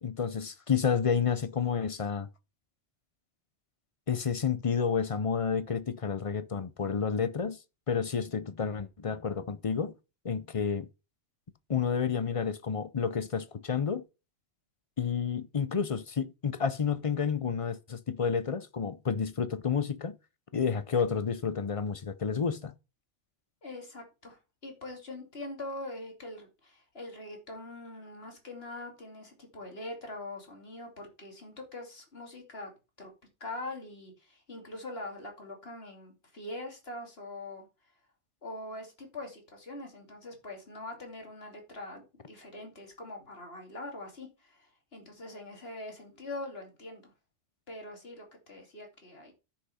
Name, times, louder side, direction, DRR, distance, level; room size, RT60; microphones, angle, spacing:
voice 1, 0.0-2.3 4.1-7.6 7.9-9.9 10.2-10.9 11.7-14.0 15.0-20.1 20.5-22.7, left 6 dB, 35° left, 0.6 m, -30 dB
voice 2, 23.6-32.7 33.0-33.1 33.4-37.7 38.4-47.0 47.7-49.3, left 2 dB, 55° left, 2.9 m, -43 dB
10.0 x 5.8 x 5.6 m
omnidirectional pair, 1.2 m